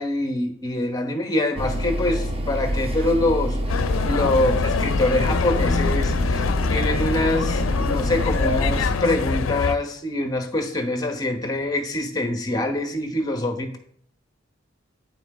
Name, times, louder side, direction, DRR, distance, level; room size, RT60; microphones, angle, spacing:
voice 1, 0.0-13.8, left 1 dB, 20° left, 5 dB, 0.9 m, -25 dB
sound 1, 1.6-9.0, equal, 30° right, 0.8 m, -27 dB
sound 2, 3.7-9.8, left 5 dB, 85° left, 0.4 m, -24 dB
8.9 x 5.7 x 4.2 m, 0.67 s
head